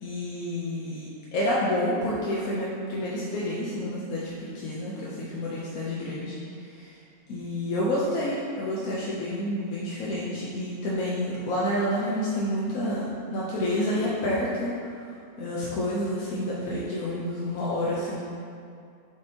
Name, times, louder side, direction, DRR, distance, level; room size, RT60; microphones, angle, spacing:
voice 1, 0.0-6.3 6.7-7.0 7.3-14.7 15.0-15.1 15.4-18.2, left 1 dB, 85° left, -7 dB, 1.3 m, -29 dB
6.8 x 5.2 x 2.8 m, 2.5 s
omnidirectional pair, 1.5 m